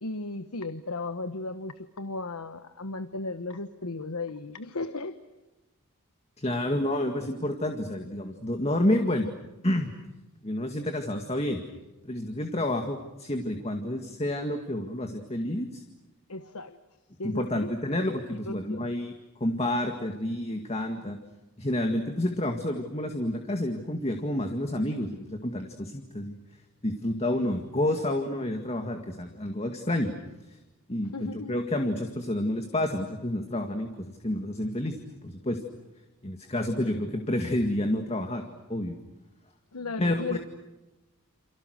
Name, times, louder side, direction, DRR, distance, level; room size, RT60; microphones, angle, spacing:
voice 1, 0.0-5.2 16.3-16.8 17.2-17.7 18.5-18.9 31.1-31.5 39.7-40.4, left 3 dB, 85° left, 10 dB, 1.2 m, -35 dB
voice 2, 6.4-9.3 9.6-9.9 10.4-11.6 12.0-15.8 17.2-19.1 19.4-21.2 21.6-26.4 26.8-30.1 30.9-35.0 35.2-35.6 36.2-38.4 38.7-39.0 40.0-40.4, left 1 dB, 30° left, 4 dB, 2.0 m, -29 dB
29.5 x 28.0 x 6.5 m, 1.1 s
head